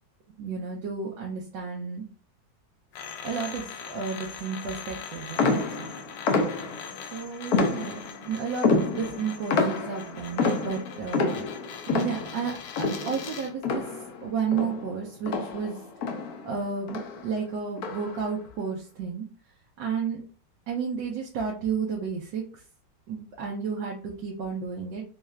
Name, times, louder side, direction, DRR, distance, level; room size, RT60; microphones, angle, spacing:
voice 1, 0.4-2.1 3.2-5.9 7.1-8.0 8.2-11.5 11.9-13.8 14.2-15.8 16.4-19.3 19.8-20.2 20.7-22.6 23.1-25.0, right 6 dB, 75° right, -2 dB, 1.4 m, -32 dB
sound 1, 2.9-13.6, left 7 dB, 85° left, 1.4 m, -42 dB
sound 2, 5.4-7.0 7.5-8.2 8.6-14.2 14.5-16.6 16.9-17.3 17.8-18.2, left 3 dB, 65° left, 1.0 m, -28 dB
4.5 x 2.4 x 3.1 m, 0.39 s
omnidirectional pair, 2.0 m